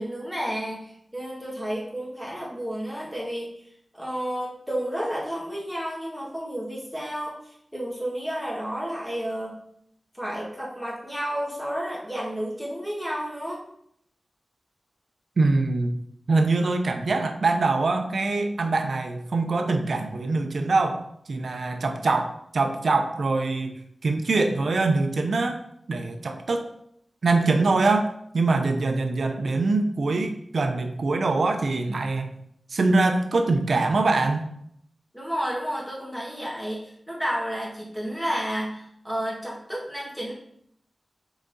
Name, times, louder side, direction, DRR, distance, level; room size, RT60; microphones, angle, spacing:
voice 1, 0.0-3.5 3.9-9.6 10.1-13.6 35.1-40.3, equal, ahead, -5 dB, 1.7 m, -31 dB
voice 2, 15.4-15.9 16.3-25.6 25.9-26.7 27.2-32.4 32.7-34.5, right 3 dB, 70° right, 6 dB, 0.7 m, -24 dB
5.9 x 4.1 x 4.0 m, 0.72 s
wide cardioid pair, 115°, 0 cm